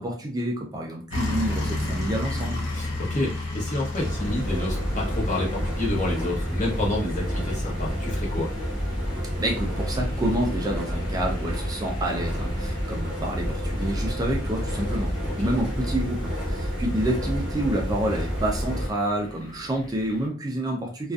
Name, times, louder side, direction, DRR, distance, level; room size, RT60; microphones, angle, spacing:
voice 1, 0.0-2.6 9.4-21.1, right 1 dB, 20° right, 0 dB, 0.4 m, -28 dB
sound 1, 1.1-20.3, left 1 dB, 80° left, 0.7 m, -35 dB
voice 2, 2.7-8.5 15.2-15.3, left 2 dB, 40° left, -4 dB, 0.9 m, -29 dB
sound 2, 4.0-18.9, equal, 5° right, 0.8 m, -29 dB
2.5 x 2.3 x 2.3 m, 0.37 s
head